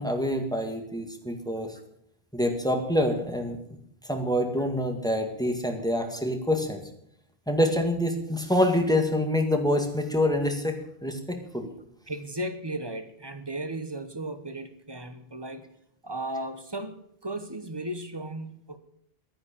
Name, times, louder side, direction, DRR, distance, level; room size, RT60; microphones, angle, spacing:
voice 1, 0.0-1.7 2.3-3.6 4.0-6.8 7.5-10.7 11.0-11.7, left 1 dB, 5° left, 4 dB, 1.9 m, -26 dB
voice 2, 12.1-15.7 16.0-17.0 17.2-18.8, right 1 dB, 25° right, 10 dB, 1.1 m, -35 dB
11.5 x 9.7 x 8.8 m, 0.70 s
omnidirectional pair, 1.0 m